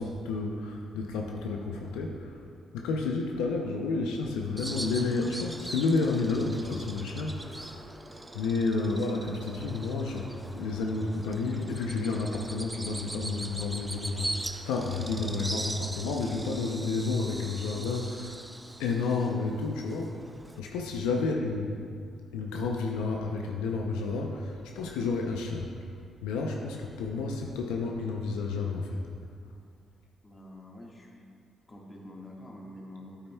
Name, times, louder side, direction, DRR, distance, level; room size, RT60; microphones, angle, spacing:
voice 1, 0.0-2.4 2.7-7.8 8.3-18.5 18.8-20.2 20.6-21.8 22.3-25.7 26.2-29.0, left 3 dB, 85° left, 1 dB, 0.5 m, -31 dB
Bird vocalization bird call bird song, 4.6-20.6, right 1 dB, 15° right, 0.4 m, -41 dB
voice 2, 30.2-31.3 31.7-33.3, left 1 dB, 30° left, -2 dB, 1.6 m, -47 dB
8.8 x 8.6 x 2.3 m, 2.3 s
supercardioid pair, 55°, 0 cm